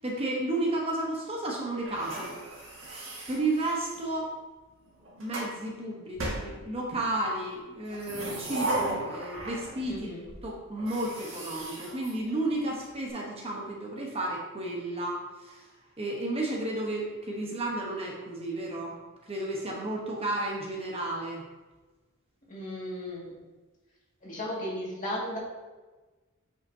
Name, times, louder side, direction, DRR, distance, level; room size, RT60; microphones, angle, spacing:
voice 1, 0.0-2.3 3.3-4.3 5.2-10.1 10.4-15.7 16.0-19.0 19.2-21.4, right 2 dB, 30° right, -2 dB, 1.0 m, -32 dB
sound 1, 1.8-4.1 4.9-5.5 6.2-7.1 7.8-10.0 10.3-10.4 10.8-12.8, right 2 dB, 65° right, 1.8 m, -37 dB
voice 2, 9.9-10.2 22.5-23.3 24.2-25.4, left 1 dB, 40° left, -5 dB, 2.1 m, -35 dB
8.0 x 5.7 x 2.7 m, 1.2 s
head